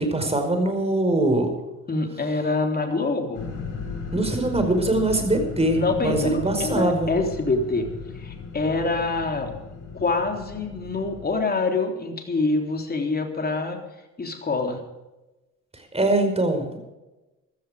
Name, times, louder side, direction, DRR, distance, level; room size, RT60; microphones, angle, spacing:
voice 1, 0.0-1.5 4.1-7.1 15.9-16.8, right 2 dB, 20° right, 5 dB, 5.1 m, -22 dB
voice 2, 1.9-3.5 5.7-7.9 8.1-9.5 9.9-13.8 14.2-14.8, left 3 dB, 30° left, 3 dB, 3.7 m, -25 dB
sound 1, 3.3-11.4, left 5 dB, 70° left, 5.3 m, -36 dB
15.5 x 13.5 x 5.1 m, 1.0 s
cardioid pair, 85°, 32 cm